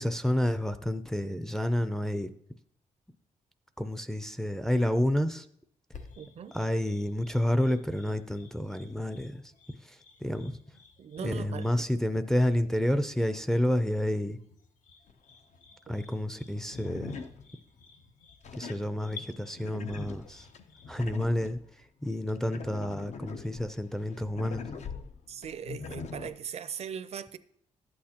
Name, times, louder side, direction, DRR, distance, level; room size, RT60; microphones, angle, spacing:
voice 1, 0.0-2.3 3.8-5.5 6.5-9.4 9.7-10.6 11.2-14.4 15.9-17.1 18.5-20.5 20.9-24.6, left 1 dB, 5° left, 0.4 m, -29 dB
sound 1, 5.9-21.1, left 5 dB, 85° left, 1.0 m, -54 dB
voice 2, 6.2-6.6 11.0-11.7 25.3-27.4, right 8 dB, 55° right, 0.5 m, -39 dB
sound 2, 15.1-15.2 16.5-17.9 18.4-21.6 22.3-26.3, left 5 dB, 65° left, 0.6 m, -42 dB
11.5 x 8.6 x 2.9 m
wide cardioid pair, 135°, 13 cm